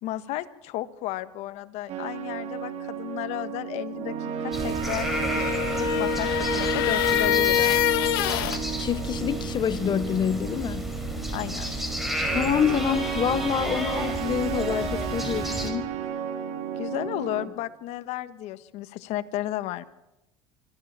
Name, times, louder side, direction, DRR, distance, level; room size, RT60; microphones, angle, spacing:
voice 1, 0.0-5.5 5.8-7.8 11.3-11.7 16.8-19.8, left 14 dB, 65° left, 1.4 m, -33 dB
sound 1, 1.9-17.5, right 7 dB, 60° right, 3.5 m, -32 dB
sound 2, 4.5-15.7, equal, ahead, 5.5 m, -33 dB
sound 3, 5.0-8.6, left 14 dB, 85° left, 1.4 m, -25 dB
voice 2, 8.8-10.9 12.3-15.9, left 9 dB, 40° left, 0.8 m, -27 dB
25.5 x 14.0 x 7.4 m
supercardioid pair, 90°, 12 cm